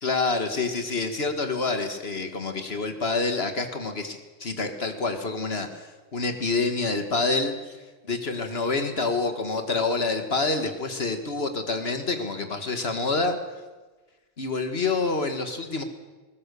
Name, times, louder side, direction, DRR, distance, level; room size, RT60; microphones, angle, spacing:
voice 1, 0.0-7.8 8.1-13.4 14.4-15.8, left 3 dB, 70° left, 6 dB, 1.9 m, -27 dB
20.5 x 20.0 x 6.9 m, 1.3 s
omnidirectional pair, 1.1 m